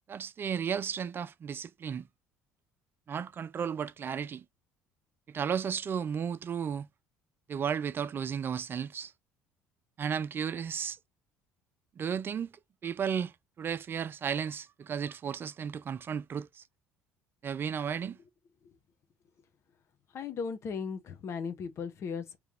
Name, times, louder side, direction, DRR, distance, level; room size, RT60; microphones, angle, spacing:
voice 1, 0.1-2.1 3.1-4.4 5.3-6.9 7.5-9.1 10.0-11.0 12.0-12.5 12.8-16.6 17.4-18.2, right 7 dB, 40° right, 0.4 m, -34 dB
voice 2, 20.1-22.4, left 6 dB, 50° left, 1.1 m, -37 dB
3.3 x 3.3 x 2.6 m
supercardioid pair, 75°, 6 cm